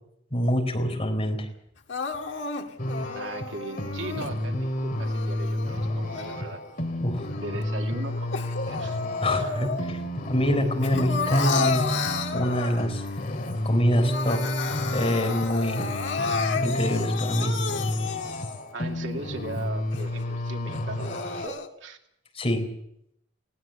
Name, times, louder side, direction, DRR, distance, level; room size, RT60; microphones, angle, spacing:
voice 1, 0.3-1.5 7.0-7.3 9.2-12.0 12.3-13.0 13.6-15.8 16.6-17.5 22.3-22.7, equal, 35° left, 4 dB, 4.1 m, -25 dB
Crying sobbing, 1.9-4.3 4.9-6.7 7.2-10.1 10.4-13.1 13.5-13.6 13.9-18.7 19.3-19.4 19.9-20.0 20.7-21.7, left 5 dB, 75° left, 1.8 m, -32 dB
sound 1, 2.8-21.5, left 1 dB, 50° left, 2.6 m, -31 dB
voice 2, 3.1-6.6 7.4-9.0 9.3-9.5 18.7-22.0, right 2 dB, 85° right, 3 dB, 2.4 m, -38 dB
19.5 x 17.5 x 7.7 m, 0.75 s
head